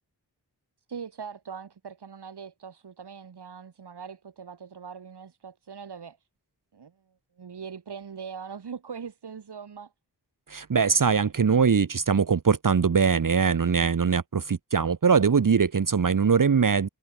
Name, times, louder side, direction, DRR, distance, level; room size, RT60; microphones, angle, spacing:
voice 1, 0.9-6.2 6.7-6.9 7.4-9.9, right 6 dB, 85° right, 3.0 m, -41 dB
voice 2, 10.5-16.9, right 6 dB, 55° right, 1.3 m, -22 dB
wide cardioid pair, 90°, 39 cm